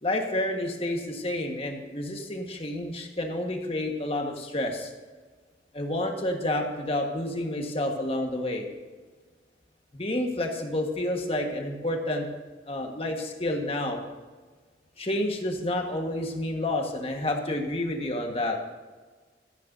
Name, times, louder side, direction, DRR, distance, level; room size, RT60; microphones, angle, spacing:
voice 1, 0.0-4.9 5.7-8.6 9.9-12.3 12.7-14.0 15.0-18.6, left 1 dB, 30° left, 2 dB, 1.6 m, -29 dB
15.0 x 14.0 x 2.8 m, 1.4 s
head